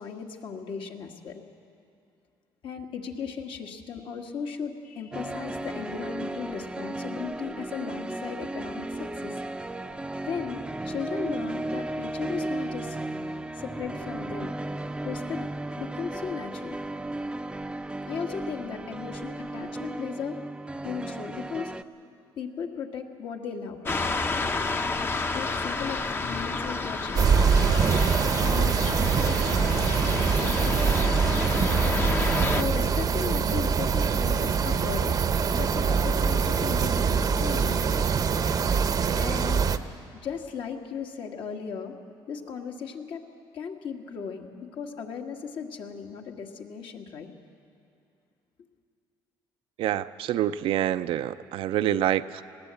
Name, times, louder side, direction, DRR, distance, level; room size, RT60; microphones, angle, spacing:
voice 1, 0.0-1.4 2.6-9.4 10.2-13.0 13.5-14.5 15.0-15.5 15.8-16.8 18.1-20.4 20.8-21.7 22.4-24.0 25.3-27.9 28.4-31.0 31.5-31.8 32.5-35.2 35.5-38.1 39.2-39.6 40.1-42.0 42.3-43.2 43.5-47.3, left 6 dB, 65° left, 2 dB, 1.8 m, -36 dB
sound 1, 5.1-21.8, right 2 dB, 10° right, 0.6 m, -35 dB
sound 2, 23.9-32.6, left 3 dB, 25° left, 0.8 m, -30 dB
sound 3, 27.1-39.8, right 6 dB, 40° right, 0.8 m, -24 dB
voice 2, 49.8-52.4, right 12 dB, 75° right, 11 dB, 0.6 m, -26 dB
20.0 x 17.0 x 8.3 m, 2.5 s
cardioid pair, 100°, 9 cm